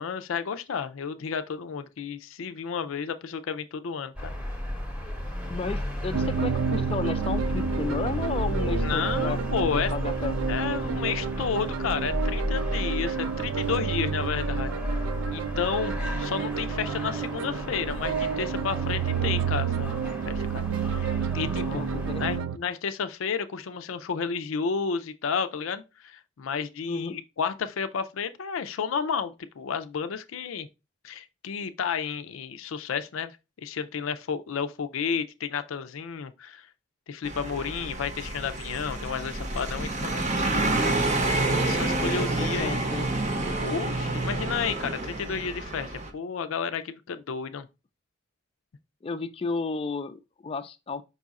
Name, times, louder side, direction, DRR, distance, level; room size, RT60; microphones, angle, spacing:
voice 1, 0.0-4.3 8.8-9.9 10.5-14.8 15.3-19.9 20.3-21.1 21.3-21.8 22.2-30.7 31.0-36.6 37.1-40.2 41.6-42.8 43.6-47.7, left 6 dB, 90° left, 0.5 m, -31 dB
sound 1, 4.2-22.4, left 1 dB, 5° right, 0.8 m, -33 dB
voice 2, 5.5-9.4 9.7-10.3 21.6-22.5 26.9-27.2 42.1-43.1 49.0-51.0, left 4 dB, 30° left, 0.3 m, -33 dB
sound 2, 6.1-22.6, right 7 dB, 75° right, 0.3 m, -30 dB
sound 3, 37.2-46.1, right 2 dB, 35° right, 0.7 m, -28 dB
5.4 x 2.4 x 4.0 m
head